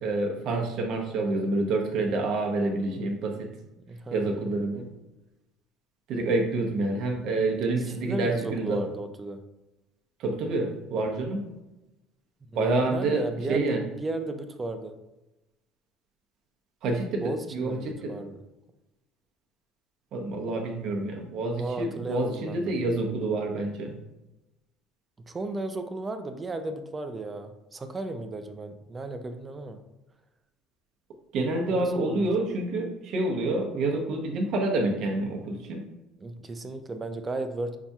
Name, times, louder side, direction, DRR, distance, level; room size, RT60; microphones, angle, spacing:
voice 1, 0.0-3.5 4.1-4.9 6.1-8.8 10.2-11.4 12.5-13.2 13.5-13.8 16.8-17.2 17.5-18.1 20.1-23.9 31.3-35.8, right 2 dB, 60° right, 1 dB, 0.8 m, -28 dB
voice 2, 3.9-4.4 7.9-9.4 12.5-15.0 17.2-18.4 21.6-22.7 25.3-29.8 31.7-32.3 36.2-37.8, right 2 dB, 20° right, 8 dB, 0.3 m, -34 dB
5.8 x 2.7 x 2.3 m, 0.99 s
cardioid pair, 125°, 0 cm